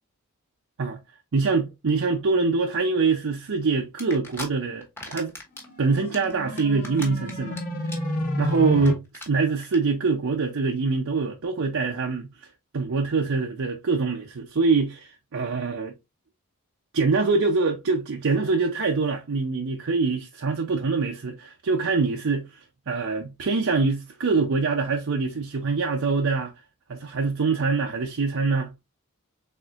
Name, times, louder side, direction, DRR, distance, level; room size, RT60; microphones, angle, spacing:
voice 1, 1.3-5.3 5.8-7.6 8.4-12.3 12.7-15.9 16.9-22.6 22.9-26.5 26.9-28.7, right 4 dB, 60° right, 0.6 m, -24 dB
sound 1, 4.0-4.5 4.8-5.6 5.9-7.6 7.9-8.2 8.4-8.5 8.8-8.9 9.1-9.3 9.6-9.8, left 1 dB, 10° left, 1.0 m, -37 dB
sound 2, 5.6-8.9, left 1 dB, 40° left, 1.2 m, -30 dB
4.2 x 3.6 x 2.4 m
head